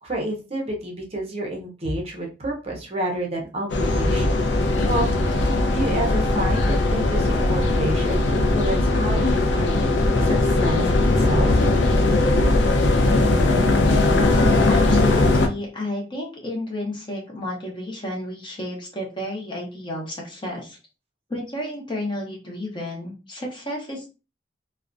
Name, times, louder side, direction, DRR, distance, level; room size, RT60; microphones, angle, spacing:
voice 1, 0.0-4.4 4.8-9.8 10.2-11.7, right 1 dB, 35° right, -1 dB, 0.6 m, -30 dB
sound 1, 3.7-15.5, left 2 dB, 80° left, 0.4 m, -19 dB
voice 2, 14.0-20.8 21.3-24.1, left 1 dB, 25° left, -1 dB, 0.7 m, -31 dB
2.4 x 2.1 x 2.5 m, 0.31 s
head